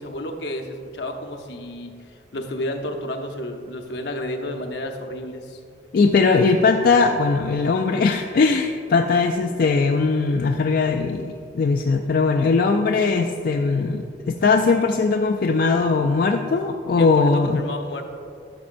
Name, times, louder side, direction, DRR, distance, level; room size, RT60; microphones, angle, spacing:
voice 1, 0.0-1.9 2.3-5.6 17.0-18.0, left 1 dB, 70° left, 4 dB, 0.8 m, -31 dB
voice 2, 5.9-17.6, left 4 dB, 55° left, 4 dB, 0.3 m, -20 dB
12.5 x 6.1 x 2.6 m, 2.4 s
head